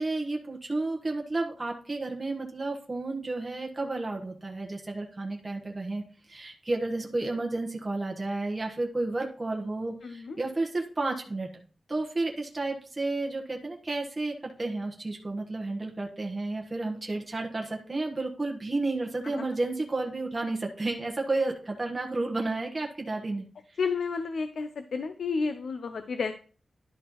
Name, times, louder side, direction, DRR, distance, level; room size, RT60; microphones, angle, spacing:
voice 1, 0.0-11.5 11.9-23.8, right 2 dB, 20° right, 0 dB, 1.2 m, -32 dB
voice 2, 10.0-10.4 19.3-19.6 23.8-26.3, left 5 dB, 80° left, 10 dB, 0.5 m, -31 dB
11.0 x 6.0 x 3.1 m, 0.40 s
wide cardioid pair, 170°, 0 cm